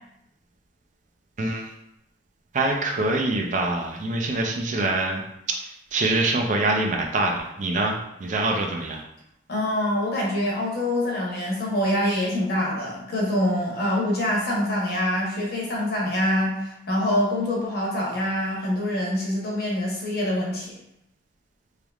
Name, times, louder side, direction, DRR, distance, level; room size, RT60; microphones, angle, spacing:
voice 1, 1.4-1.7 2.5-5.2 5.5-9.0, right 2 dB, 40° right, 1 dB, 0.4 m, -25 dB
voice 2, 9.5-20.7, left 1 dB, 55° left, -3 dB, 0.9 m, -25 dB
3.3 x 3.0 x 2.3 m, 0.82 s
head